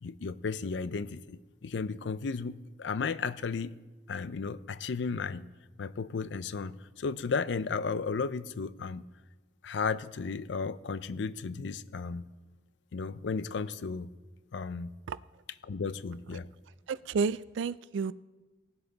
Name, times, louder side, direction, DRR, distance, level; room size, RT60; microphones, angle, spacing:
voice 1, 0.0-3.7 4.1-5.4 5.8-9.0 9.6-12.2 12.9-14.1 14.5-14.9 15.6-16.5, left 5 dB, 80° left, 0.5 m, -34 dB
voice 2, 16.9-18.1, right 5 dB, 90° right, 0.3 m, -31 dB
18.0 x 7.9 x 4.0 m
head